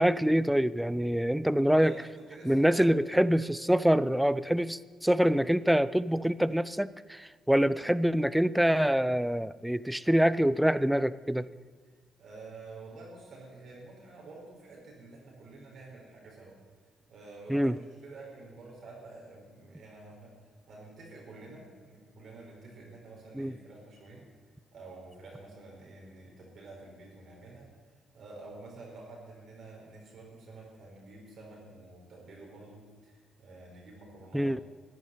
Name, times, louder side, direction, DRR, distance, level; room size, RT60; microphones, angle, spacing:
voice 1, 0.0-1.9 2.4-11.5 17.5-17.8 23.4-23.5 34.3-34.6, equal, 5° right, 17 dB, 0.5 m, -25 dB
voice 2, 1.7-3.0 11.8-11.9 12.2-16.6 17.1-24.3 24.7-27.7 28.1-34.5, right 3 dB, 60° right, -2 dB, 4.6 m, -49 dB
13.5 x 9.4 x 9.2 m, 1.5 s
cardioid pair, 90°, 0 cm